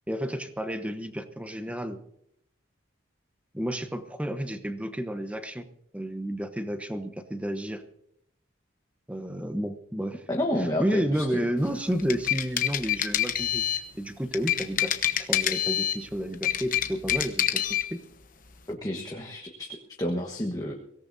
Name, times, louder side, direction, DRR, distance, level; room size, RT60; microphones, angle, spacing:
voice 1, 0.1-2.0 3.5-5.6 5.9-7.8 9.1-10.3 10.6-13.6 13.9-14.9 15.2-18.0, equal, 5° right, 8 dB, 1.0 m, -31 dB
voice 2, 10.3-11.5 18.7-20.7, left 1 dB, 20° left, 0 dB, 1.4 m, -30 dB
sound 1, 11.9-13.9 14.3-16.0 16.3-17.9, left 11 dB, 45° left, 1.0 m, -26 dB
23.5 x 17.5 x 2.7 m, 0.73 s
head